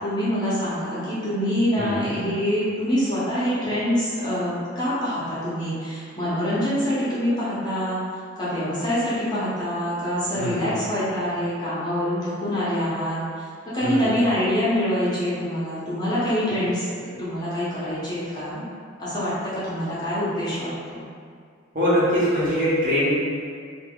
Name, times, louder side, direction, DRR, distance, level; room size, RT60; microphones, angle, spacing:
voice 1, 0.0-8.0 8.4-13.2 13.7-16.8 17.2-18.6 19.0-21.0, equal, 20° left, -11 dB, 0.8 m, -25 dB
voice 2, 10.4-10.7 13.8-14.1 21.7-23.1, equal, 45° right, -11 dB, 1.1 m, -22 dB
2.8 x 2.2 x 3.6 m, 2.1 s
head